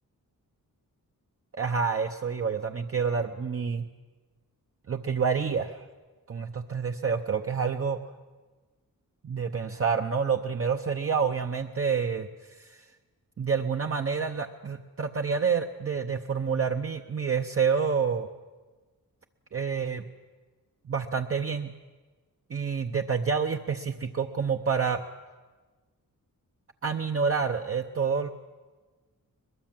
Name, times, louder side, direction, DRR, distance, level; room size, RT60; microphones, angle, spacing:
voice 1, 1.5-3.9 4.9-5.8 6.3-8.0 9.2-12.9 13.4-18.3 19.5-20.1 20.9-21.7 22.5-25.0 26.8-28.3, right 6 dB, 40° right, 4 dB, 0.8 m, -28 dB
22.0 x 22.0 x 7.5 m, 1.3 s
wide cardioid pair, 175°, 36 cm